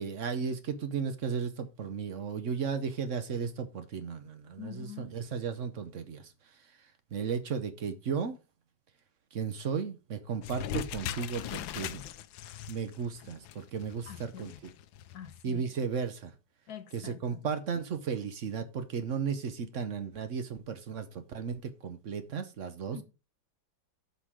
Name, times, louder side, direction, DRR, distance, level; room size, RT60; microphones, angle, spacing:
voice 1, 0.0-6.2 7.1-8.4 9.3-12.0 12.7-14.5 15.4-16.3 16.9-23.0, right 6 dB, 50° right, 0.9 m, -35 dB
voice 2, 4.6-5.1 14.1-14.6 15.1-15.7 16.7-17.4 22.9-23.0, left 9 dB, 60° left, 1.3 m, -45 dB
sound 1, 10.4-15.4, left 10 dB, 85° left, 1.4 m, -40 dB
8.3 x 5.4 x 4.9 m
omnidirectional pair, 2.1 m